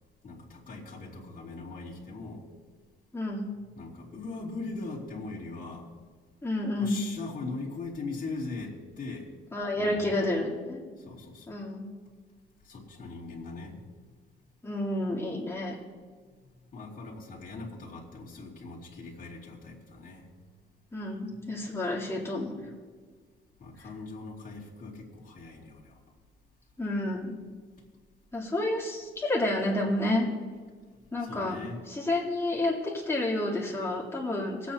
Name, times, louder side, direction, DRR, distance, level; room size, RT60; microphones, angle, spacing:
voice 1, 0.2-2.4 3.7-5.9 6.7-9.3 9.8-10.2 11.0-11.6 12.6-13.8 16.7-20.3 23.6-26.0 31.2-31.8, left 3 dB, 45° left, -5 dB, 2.9 m, -40 dB
voice 2, 3.1-3.5 6.4-7.0 9.5-10.8 11.5-11.9 14.6-15.8 20.9-22.5 26.8-27.4 28.3-30.3 31.1-31.6 31.9-34.7, left 1 dB, 15° left, -5 dB, 3.3 m, -30 dB
24.0 x 8.3 x 2.9 m, 1.6 s
cardioid pair, 90°, 20 cm